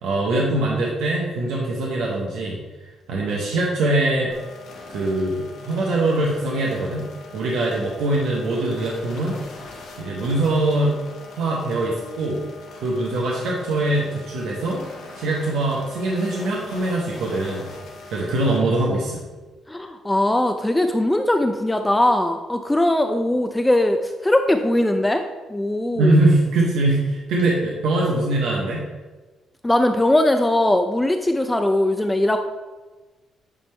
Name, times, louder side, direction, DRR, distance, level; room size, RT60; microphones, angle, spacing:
voice 1, 0.0-2.6 3.1-4.3 4.9-7.1 7.3-9.4 10.0-11.0 11.4-12.4 12.7-14.8 15.2-17.7 18.1-19.2 26.0-28.8, right 2 dB, 85° right, -3 dB, 1.0 m, -22 dB
sound 1, 4.3-18.6, left 3 dB, 80° left, 1.6 m, -41 dB
voice 2, 19.7-25.2 25.5-26.1 29.6-32.4, left 1 dB, 10° left, 6 dB, 0.4 m, -20 dB
8.7 x 3.4 x 3.3 m, 1.2 s
cardioid pair, 90°, 0 cm